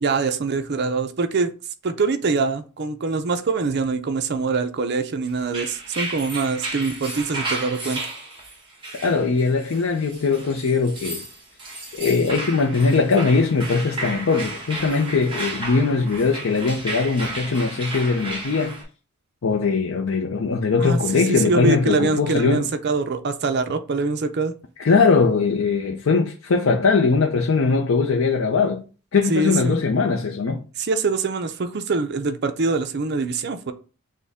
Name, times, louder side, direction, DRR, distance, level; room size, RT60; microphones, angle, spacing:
voice 1, 0.0-1.5 1.8-8.0 20.8-24.5 29.3-29.8 30.8-33.7, right 4 dB, 50° right, 0.5 m, -24 dB
sound 1, 5.4-18.8, right 2 dB, 20° right, 1.2 m, -33 dB
voice 2, 8.9-11.2 11.9-18.8 19.4-22.7 24.8-28.8 29.1-30.6, left 4 dB, 65° left, 0.5 m, -20 dB
6.4 x 2.1 x 3.5 m
head